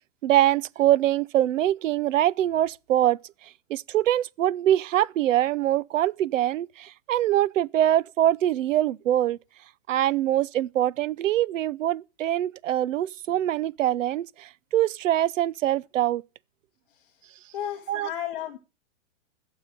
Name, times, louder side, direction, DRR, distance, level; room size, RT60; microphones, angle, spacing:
voice 1, 0.2-3.2 3.7-9.4 9.9-16.2 17.9-18.1, right 12 dB, 80° right, 0.7 m, -24 dB
voice 2, 17.5-18.6, left 11 dB, 45° left, 1.7 m, -33 dB
12.0 x 7.4 x 6.7 m
supercardioid pair, 165°, 37 cm